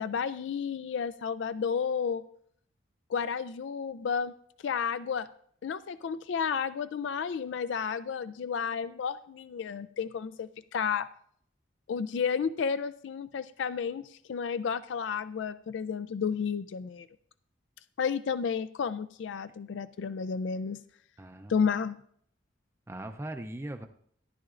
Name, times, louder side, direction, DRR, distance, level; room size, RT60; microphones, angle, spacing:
voice 1, 0.0-2.2 3.1-4.3 4.6-5.3 5.6-11.1 11.9-17.1 18.0-20.8 21.5-22.0, left 6 dB, 75° left, 13 dB, 0.3 m, -32 dB
voice 2, 21.2-21.5 22.9-23.9, right 1 dB, 15° right, 7 dB, 0.4 m, -39 dB
14.0 x 11.0 x 2.5 m, 0.62 s
head